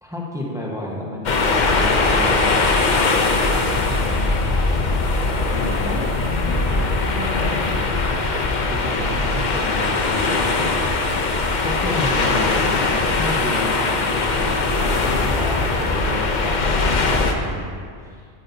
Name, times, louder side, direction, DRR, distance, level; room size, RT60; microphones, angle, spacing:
voice 1, 0.0-3.3 3.9-4.5 8.7-11.2 11.6-12.5 12.9-18.3, left 1 dB, 5° right, -3 dB, 1.1 m, -32 dB
sound 1, 1.3-17.3, left 3 dB, 50° left, 0.8 m, -20 dB
voice 2, 5.5-7.9, left 2 dB, 75° left, 0 dB, 1.4 m, -32 dB
12.5 x 8.7 x 2.7 m, 2.1 s
omnidirectional pair, 1.1 m